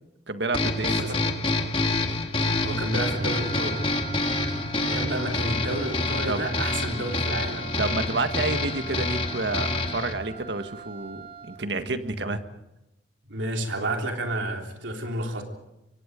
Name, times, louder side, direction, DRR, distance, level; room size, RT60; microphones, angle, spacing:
voice 1, 0.3-1.1 6.3-6.5 7.8-12.4, right 3 dB, 70° right, 8 dB, 1.7 m, -29 dB
sound 1, 0.5-10.1, left 2 dB, 30° left, 2.0 m, -27 dB
voice 2, 0.9-1.2 2.6-3.8 4.8-7.7 13.3-15.4, right 1 dB, 90° right, 2 dB, 3.7 m, -30 dB
Wind instrument woodwind instrument, 3.0-11.7, right 7 dB, 30° right, 1.5 m, -42 dB
25.5 x 24.0 x 5.2 m, 0.90 s
head